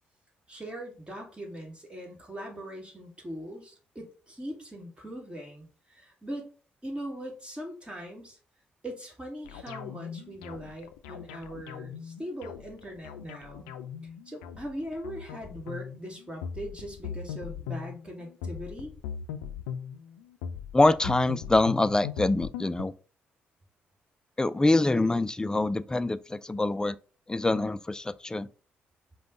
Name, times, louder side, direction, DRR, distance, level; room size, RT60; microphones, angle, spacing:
voice 1, 0.5-6.5 6.8-8.4 8.8-13.7 14.3-18.9, equal, 20° right, 1.8 m, -40 dB
sound 1, 9.5-22.8, left 7 dB, 85° left, 0.4 m, -39 dB
voice 2, 20.7-22.9 24.4-27.0 27.3-28.5, left 2 dB, 15° left, 0.3 m, -25 dB
5.1 x 2.2 x 3.8 m
hypercardioid pair, 45°, 5 cm